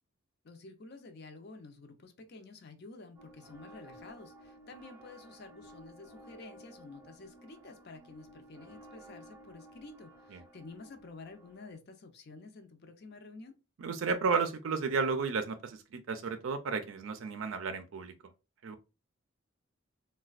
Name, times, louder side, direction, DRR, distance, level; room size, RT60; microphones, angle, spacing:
voice 1, 0.4-13.6, left 3 dB, 50° left, 0.6 m, -50 dB
sound 1, 3.2-11.8, right 1 dB, 10° right, 0.5 m, -55 dB
voice 2, 13.8-18.1 18.6-18.8, right 5 dB, 75° right, 0.4 m, -33 dB
4.1 x 2.2 x 2.3 m
head